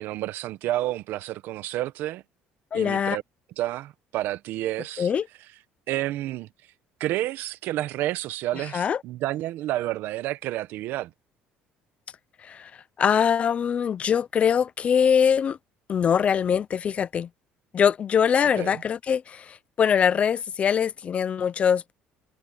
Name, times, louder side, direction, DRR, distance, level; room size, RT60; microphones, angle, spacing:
voice 1, 0.0-2.2 2.7-3.2 3.6-5.1 5.9-6.5 7.0-11.1 18.6-18.8, right 15 dB, 70° right, 1.1 m, -30 dB
voice 2, 2.7-3.2 5.0-5.3 8.7-9.0 12.4-12.7 13.0-15.6 15.9-17.3 17.7-21.9, left 7 dB, 35° left, 0.6 m, -23 dB
cardioid pair, 130°, 4 cm